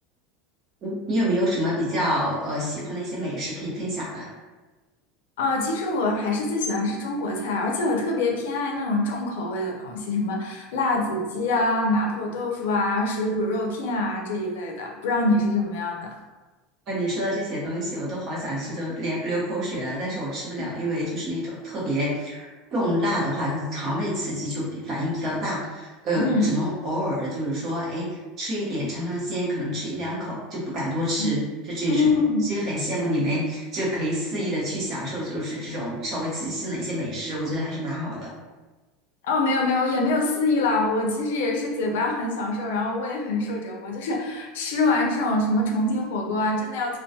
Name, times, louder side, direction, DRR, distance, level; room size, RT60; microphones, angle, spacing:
voice 1, 0.8-4.3 16.9-28.1 28.4-32.1 32.4-38.3, equal, 35° right, -6 dB, 0.9 m, -28 dB
voice 2, 5.4-16.1 26.2-26.5 31.2-31.3 31.9-32.4 39.2-47.0, left 2 dB, 85° left, 0 dB, 0.5 m, -25 dB
2.2 x 2.2 x 2.7 m, 1.2 s
supercardioid pair, 160°, 0 cm